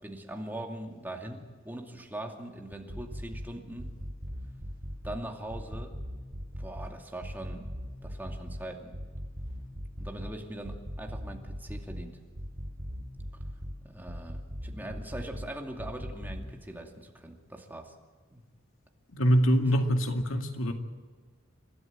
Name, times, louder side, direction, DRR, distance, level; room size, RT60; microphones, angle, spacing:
voice 1, 0.0-4.0 5.0-6.0 6.6-7.7 8.0-9.0 10.0-12.2 13.8-17.9 18.3-18.4, right 1 dB, 10° right, 2 dB, 2.5 m, -41 dB
sound 1, 2.7-3.5 3.8-5.2 5.5-6.9 7.2-8.6 8.9-10.3 10.6-12.0 12.3-13.7 14.1-15.5 15.8-16.4, equal, 55° right, 2.7 m, -38 dB
voice 2, 19.1-20.7, equal, 80° left, 5 dB, 2.2 m, -24 dB
29.0 x 13.0 x 8.8 m, 1.4 s
head